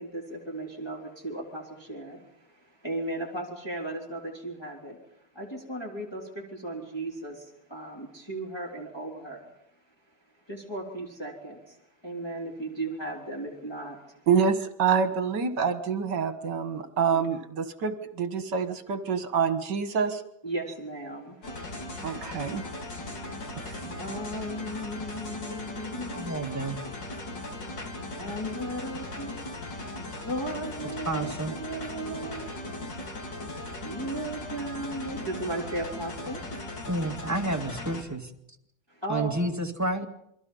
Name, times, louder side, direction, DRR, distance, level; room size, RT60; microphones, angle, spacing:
voice 1, 0.0-5.0 5.3-9.5 10.5-11.8 12.0-14.3 17.1-17.3 20.4-22.3 24.0-26.4 27.6-27.7 28.1-29.3 30.3-31.3 31.6-36.9 38.9-39.4, right 1 dB, 10° left, -2 dB, 3.6 m, -36 dB
voice 2, 14.3-20.2 22.0-22.7 23.6-23.9, right 6 dB, 55° right, 8 dB, 2.1 m, -27 dB
sound 1, 21.4-38.0, left 2 dB, 55° left, 4.1 m, -38 dB
voice 3, 26.1-26.8 31.0-31.5 36.9-38.3 39.1-40.1, right 1 dB, 10° right, 3 dB, 1.7 m, -30 dB
28.5 x 23.5 x 5.5 m, 0.77 s
omnidirectional pair, 2.3 m